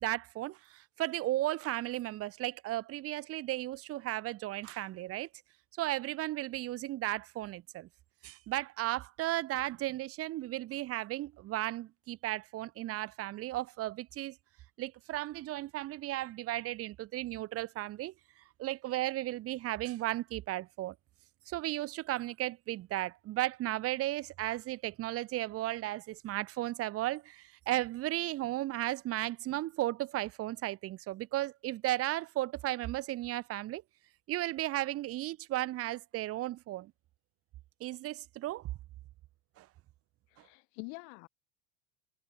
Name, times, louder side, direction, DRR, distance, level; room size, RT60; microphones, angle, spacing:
voice 1, 0.0-5.3 5.8-7.9 8.2-14.4 14.8-18.1 18.6-20.9 21.5-33.8 34.3-36.9 37.8-38.7 39.6-39.7 40.4-40.5, right 15 dB, 45° right, 1.2 m, -35 dB
voice 2, 40.3-41.3, left 40 dB or more, 65° left, 2.4 m, -46 dB
hypercardioid pair, 95°, 32 cm